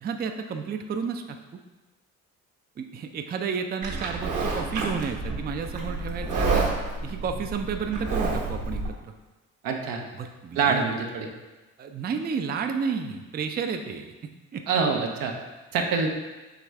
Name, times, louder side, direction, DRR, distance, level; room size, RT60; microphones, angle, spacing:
voice 1, 0.0-1.6 2.8-6.7 7.0-9.1 10.2-10.8 11.8-14.1 14.5-14.6, right 6 dB, 30° right, 6 dB, 0.4 m, -31 dB
Livestock farm animals working animals, 3.8-8.9, right 3 dB, 60° right, 1.2 m, -29 dB
voice 2, 9.6-10.1 10.5-11.3 14.7-15.4 15.7-16.1, right 5 dB, 75° right, 3 dB, 0.7 m, -25 dB
4.9 x 3.1 x 3.4 m, 1.2 s
supercardioid pair, 65°, 35 cm